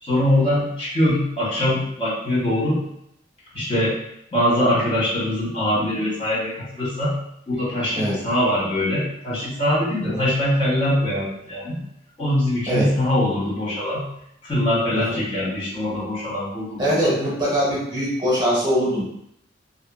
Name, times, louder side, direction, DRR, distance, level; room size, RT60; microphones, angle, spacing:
voice 1, 0.0-2.8 3.5-4.0 4.3-7.2 7.5-11.8 12.2-14.1 14.4-17.1, left 1 dB, 30° left, -8 dB, 1.2 m, -22 dB
voice 2, 14.9-15.2 16.8-19.0, equal, 25° right, -8 dB, 0.8 m, -22 dB
2.7 x 2.6 x 2.3 m, 0.76 s
head